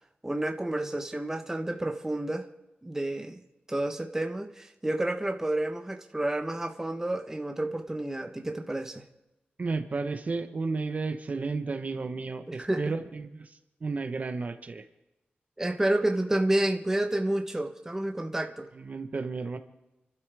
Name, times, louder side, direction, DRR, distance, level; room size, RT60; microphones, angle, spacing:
voice 1, 0.2-2.5 2.8-3.4 3.7-9.1 12.5-12.9 15.6-18.7, right 1 dB, 15° right, 4 dB, 1.1 m, -30 dB
voice 2, 9.6-14.8 18.7-19.6, right 3 dB, 45° right, 8 dB, 1.2 m, -33 dB
29.5 x 12.5 x 3.6 m, 1.0 s
wide cardioid pair, 135°, 4 cm